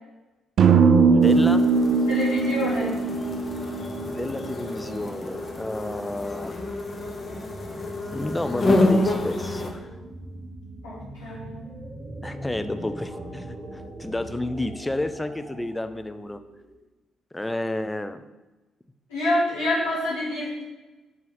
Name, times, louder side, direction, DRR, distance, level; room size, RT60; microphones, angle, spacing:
sound 1, 0.6-4.7, right 5 dB, 60° right, 0.3 m, -20 dB
voice 1, 1.1-1.6 4.1-6.6 8.1-9.9 12.2-16.4 17.3-18.2, left 1 dB, 15° left, 10 dB, 0.5 m, -30 dB
sound 2, 1.2-9.7, left 2 dB, 40° left, 1.0 m, -28 dB
voice 2, 2.1-2.9 10.8-11.6 19.1-20.6, left 1 dB, 85° left, -11 dB, 2.1 m, -27 dB
sound 3, 2.6-16.8, right 1 dB, 30° right, 1.5 m, -42 dB
5.5 x 4.7 x 4.1 m, 1.1 s
figure-of-eight pair, 40°, 0 cm